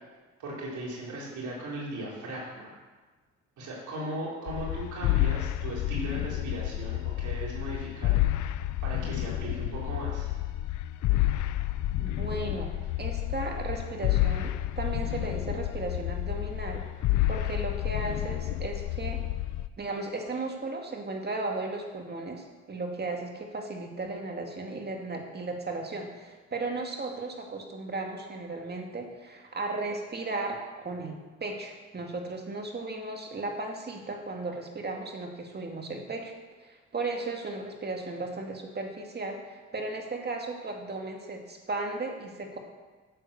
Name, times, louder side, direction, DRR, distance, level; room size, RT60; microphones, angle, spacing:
voice 1, 0.4-2.8 3.6-8.2 8.8-10.3, right 1 dB, 75° right, -5 dB, 4.5 m, -37 dB
sound 1, 4.5-19.7, left 14 dB, 75° left, 0.6 m, -30 dB
voice 2, 12.0-16.8 17.3-19.2 19.8-36.3 36.6-42.6, right 2 dB, 35° right, 2 dB, 2.2 m, -35 dB
9.8 x 7.8 x 6.9 m, 1.3 s
cardioid pair, 90°, 30 cm